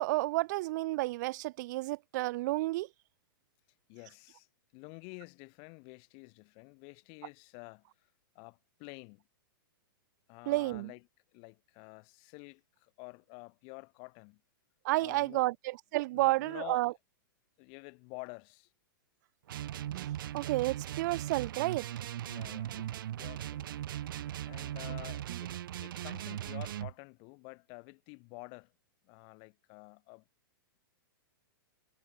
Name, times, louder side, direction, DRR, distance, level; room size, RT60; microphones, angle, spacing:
voice 1, 0.0-2.9 10.5-10.9 14.8-16.9 19.9-21.8 25.3-25.4, right 19 dB, 50° right, 2.1 m, -31 dB
voice 2, 3.9-4.5 4.7-7.9 8.3-9.2 10.3-11.0 11.3-14.4 15.0-15.5 16.1-16.9 17.6-18.7 22.2-23.7 24.4-28.7 29.0-30.2, left 37 dB, 45° left, 5.9 m, -49 dB
sound 1, 19.5-26.9, right 12 dB, 70° right, 1.1 m, -39 dB
hypercardioid pair, 130°, 12 cm